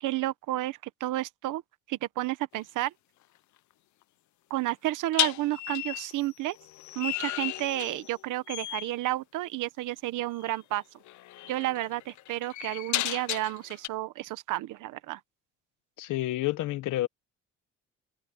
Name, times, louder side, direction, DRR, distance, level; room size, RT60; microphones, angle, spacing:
voice 1, 0.0-1.6 1.9-2.9 4.5-6.6 6.9-10.8 11.5-15.2, right 16 dB, 90° right, 1.2 m, -31 dB
sound 1, 2.5-2.8 5.1-8.2 8.5-8.9 10.4-10.6 11.1-13.9, left 16 dB, 70° left, 0.6 m, -34 dB
voice 2, 16.0-17.1, left 15 dB, 90° left, 1.3 m, -29 dB
cardioid pair, 90°, 30 cm